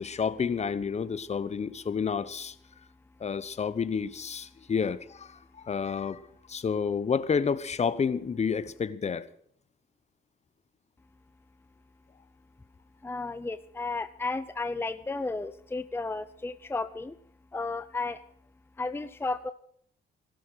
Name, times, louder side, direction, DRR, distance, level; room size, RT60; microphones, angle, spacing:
voice 1, 0.0-2.5 3.2-6.2 6.5-9.3, left 6 dB, 35° left, 0.9 m, -30 dB
voice 2, 13.0-17.2 17.5-18.2 18.8-19.5, left 3 dB, 10° left, 0.7 m, -33 dB
16.0 x 12.5 x 6.3 m
cardioid pair, 90°, 20 cm